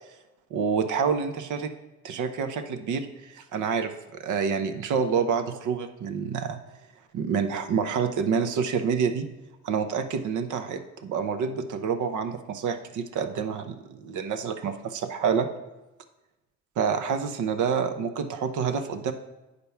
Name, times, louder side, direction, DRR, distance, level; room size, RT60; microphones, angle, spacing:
voice 1, 0.5-1.7 2.0-6.6 7.1-9.3 9.6-15.5 16.8-19.1, right 6 dB, 75° right, 8 dB, 0.9 m, -28 dB
8.2 x 5.2 x 5.8 m, 1.0 s
cardioid pair, 90°, 30 cm